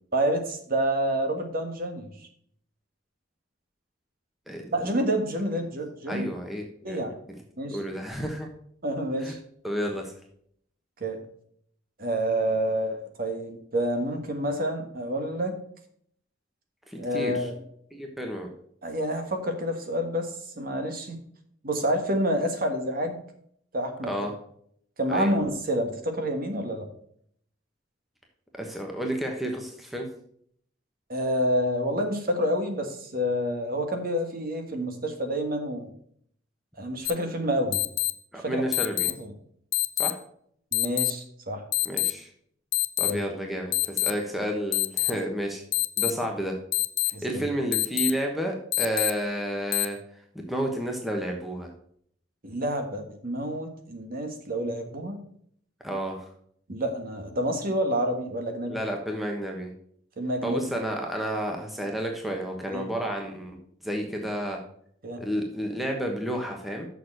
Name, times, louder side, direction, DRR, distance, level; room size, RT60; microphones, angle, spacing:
voice 1, 0.1-2.1 4.7-6.2 6.8-7.1 7.6-7.8 8.8-9.4 11.0-11.2 12.0-15.5 17.0-17.6 18.8-20.3 20.6-21.2 21.6-23.2 23.7-24.1 25.0-26.9 31.1-35.9 36.8-37.8 38.4-38.6 39.2-39.3 40.7-41.6 43.1-43.2 47.1-47.5 52.4-55.2 56.7-58.8 60.2-60.7 62.7-62.9 65.0-65.2, equal, 50° right, 5 dB, 1.6 m, -28 dB
voice 2, 4.5-4.9 6.1-7.0 7.3-7.4 7.7-8.5 9.2-9.3 9.6-10.1 16.9-17.5 17.9-18.5 24.1-24.3 25.1-25.3 28.5-30.1 38.3-39.1 40.0-40.2 41.8-42.3 43.0-45.6 46.0-46.6 47.2-50.0 50.3-51.7 55.8-56.3 58.6-59.7 60.4-63.6 63.8-64.6 65.2-66.9, right 1 dB, ahead, 1 dB, 1.1 m, -31 dB
sound 1, 37.0-37.1 37.7-38.1 38.7-39.1 39.7-40.1 40.7-41.1 41.7-42.1 42.7-43.1 43.7-44.1 44.7-45.1 45.7-46.1 46.7-47.1 47.7-48.1 48.7-49.1 49.7-49.8, left 18 dB, 80° left, 0.6 m, -24 dB
6.7 x 6.4 x 6.5 m, 0.65 s
head